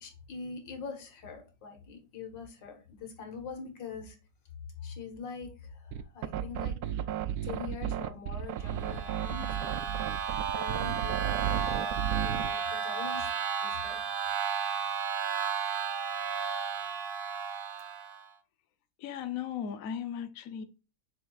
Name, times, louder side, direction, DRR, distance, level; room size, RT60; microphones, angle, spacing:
voice 1, 0.0-4.2 4.8-6.8 7.4-9.8 10.5-12.0 12.2-13.3 13.6-14.0, left 5 dB, 85° left, 2.3 m, -43 dB
sound 1, 5.9-12.5, right 10 dB, 70° right, 1.0 m, -33 dB
sound 2, 8.6-18.3, right 6 dB, 45° right, 0.7 m, -33 dB
voice 2, 19.0-20.6, left 8 dB, 60° left, 1.1 m, -36 dB
7.4 x 6.2 x 2.4 m
omnidirectional pair, 1.9 m